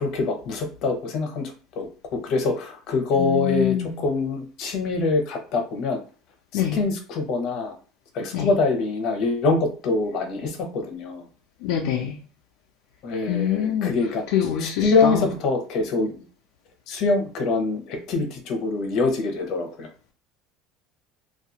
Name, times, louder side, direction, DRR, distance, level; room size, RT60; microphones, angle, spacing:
voice 1, 0.0-1.9 2.1-6.0 6.5-7.7 8.1-11.2 13.0-14.2 14.6-16.2 16.9-19.9, left 3 dB, 55° left, 0.8 m, -24 dB
voice 2, 3.2-4.0 6.5-6.8 8.3-8.5 11.6-12.2 13.3-14.0 14.3-15.3, left 10 dB, 80° left, 0.4 m, -25 dB
2.4 x 2.3 x 2.8 m
cardioid pair, 135°, 0 cm